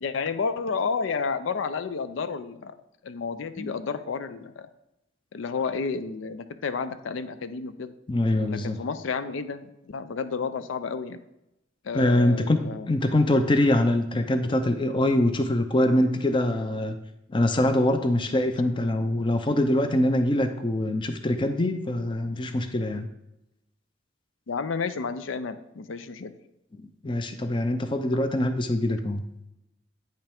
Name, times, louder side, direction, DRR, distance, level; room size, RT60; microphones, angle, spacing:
voice 1, 0.0-2.7 3.0-4.7 5.3-7.9 8.5-11.2 11.8-12.9 24.5-26.3, left 5 dB, 80° left, 12 dB, 0.5 m, -31 dB
voice 2, 8.1-8.8 11.9-12.6 12.9-17.0 17.3-23.1 27.0-29.2, left 1 dB, 25° left, 8 dB, 0.5 m, -24 dB
8.9 x 5.6 x 3.5 m, 0.88 s
head